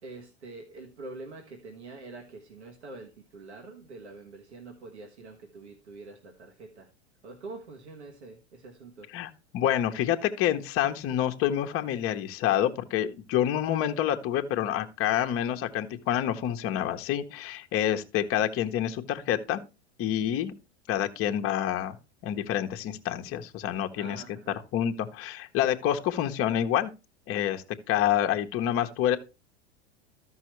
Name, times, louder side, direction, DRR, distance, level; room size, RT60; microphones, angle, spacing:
voice 1, 0.0-6.9 7.2-9.1 23.9-24.6, right 3 dB, 85° right, 1.5 m, -45 dB
voice 2, 9.1-19.6 20.0-20.5 20.9-21.9 22.2-24.2 24.7-26.9 27.3-29.2, left 11 dB, 40° left, 1.0 m, -27 dB
13.5 x 5.6 x 3.1 m
hypercardioid pair, 85°, 33 cm